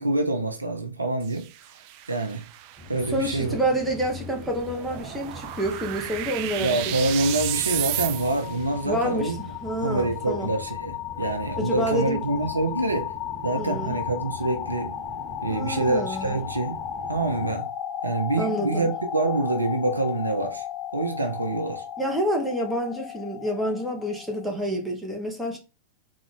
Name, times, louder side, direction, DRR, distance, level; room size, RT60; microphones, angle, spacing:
voice 1, 0.0-1.5 2.1-2.4 2.9-3.6 6.5-9.5 9.8-13.1 13.4-15.0 15.4-16.8 17.1-17.7 18.0-20.6 20.9-21.8, right 2 dB, 80° right, 0.6 m, -26 dB
sound 1, 1.2-8.6, right 13 dB, 45° right, 0.3 m, -34 dB
sound 2, 2.8-17.6, left 3 dB, 15° left, 1.3 m, -43 dB
voice 2, 3.1-6.8 8.8-10.5 11.6-12.2 13.5-14.0 15.5-16.4 18.4-18.9 22.0-25.6, right 1 dB, 5° right, 1.0 m, -28 dB
sound 3, 6.8-24.7, left 10 dB, 35° left, 0.3 m, -35 dB
3.7 x 2.5 x 3.3 m
figure-of-eight pair, 90°, 0 cm